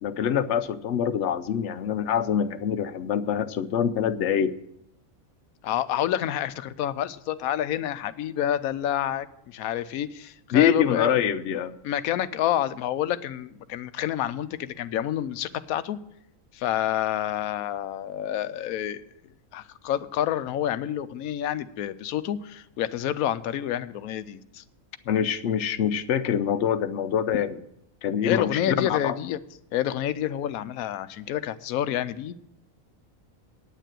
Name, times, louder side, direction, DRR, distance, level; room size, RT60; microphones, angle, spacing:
voice 1, 0.0-4.6 10.5-11.8 25.1-27.6 28.0-29.2, left 8 dB, 60° left, 12 dB, 0.9 m, -25 dB
voice 2, 5.6-11.1 11.8-16.0 16.5-19.0 19.5-24.6 28.2-29.4 29.7-32.3, left 11 dB, 80° left, 14 dB, 1.1 m, -28 dB
9.2 x 9.0 x 7.5 m, 0.78 s
omnidirectional pair, 1.5 m